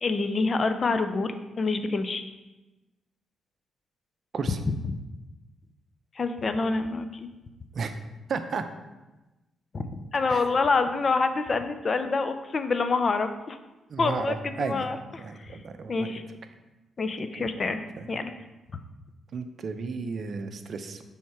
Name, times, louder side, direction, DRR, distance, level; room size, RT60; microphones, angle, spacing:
voice 1, 0.0-2.2 4.5-4.6 6.2-7.3 9.7-13.6 14.0-15.6 15.9-16.2 17.0-18.3, left 4 dB, 45° left, 9 dB, 0.5 m, -27 dB
voice 2, 8.3-8.6 10.3-10.4 13.9-14.9 15.2-16.1 18.0-18.1 19.3-21.0, right 5 dB, 55° right, 8 dB, 0.5 m, -33 dB
6.2 x 3.5 x 4.3 m, 1.1 s
cardioid pair, 70°, 0 cm